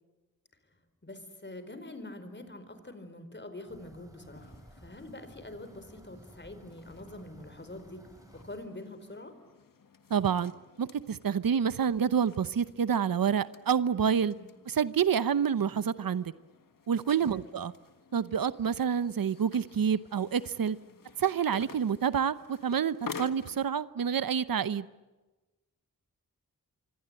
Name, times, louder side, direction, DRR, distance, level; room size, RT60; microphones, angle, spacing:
voice 1, 1.0-9.4 14.4-14.5 17.2-17.4 20.8-21.0, left 1 dB, 30° left, 10 dB, 4.4 m, -45 dB
sound 1, 3.7-8.7, right 1 dB, 10° right, 4.4 m, -55 dB
sound 2, 4.2-23.7, left 5 dB, 70° left, 1.7 m, -51 dB
voice 2, 10.1-10.5 10.8-14.3 14.7-16.3 16.9-17.7 18.1-20.8 21.2-24.8, right 7 dB, 80° right, 15 dB, 0.9 m, -28 dB
26.5 x 25.0 x 9.0 m, 1.1 s
wide cardioid pair, 80°, 34 cm